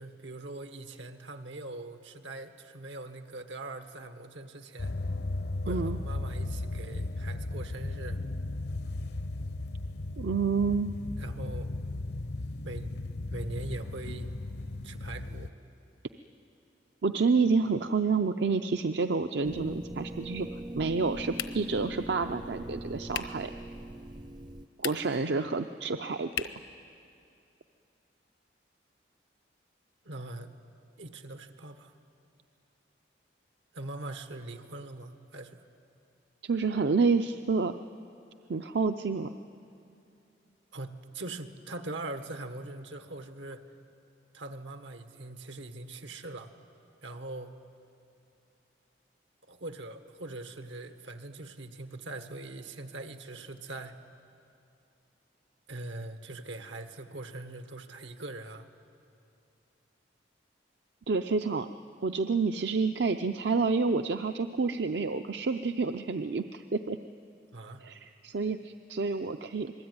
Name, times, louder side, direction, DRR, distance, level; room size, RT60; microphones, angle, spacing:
voice 1, 0.0-4.9 5.6-8.2 11.2-11.7 12.6-12.9 13.3-14.3 14.8-15.5 30.0-30.5 31.0-31.9 33.7-35.6 40.7-43.6 44.3-46.5 47.0-47.5 49.5-54.0 55.7-58.7 67.5-67.8, right 2 dB, 90° right, 8 dB, 1.6 m, -42 dB
sound 1, 4.8-15.5, left 2 dB, 60° left, 0.6 m, -36 dB
voice 2, 5.7-6.0 10.2-11.0 17.0-20.5 20.7-23.5 24.8-26.5 36.4-37.7 38.5-39.3 61.1-61.7 62.0-67.0 67.8-69.7, right 4 dB, 70° right, 8 dB, 0.6 m, -29 dB
sound 2, 19.4-24.7, right 1 dB, 25° right, 0.5 m, -41 dB
sound 3, 21.3-21.8 23.1-23.5 24.7-25.3 26.3-26.7, left 10 dB, 90° left, 1.2 m, -37 dB
27.5 x 20.5 x 9.6 m, 2.6 s
head